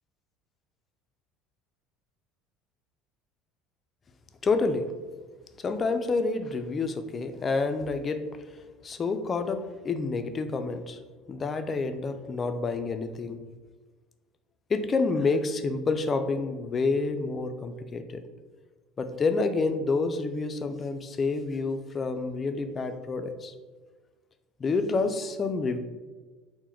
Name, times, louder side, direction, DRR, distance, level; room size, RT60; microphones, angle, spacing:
voice 1, 4.4-4.9 5.6-8.2 8.8-11.0 11.3-13.4 14.7-18.2 19.0-23.5 24.6-25.8, left 3 dB, 30° left, 8 dB, 0.3 m, -28 dB
3.8 x 2.1 x 4.2 m, 1.3 s
supercardioid pair, 90°, 0 cm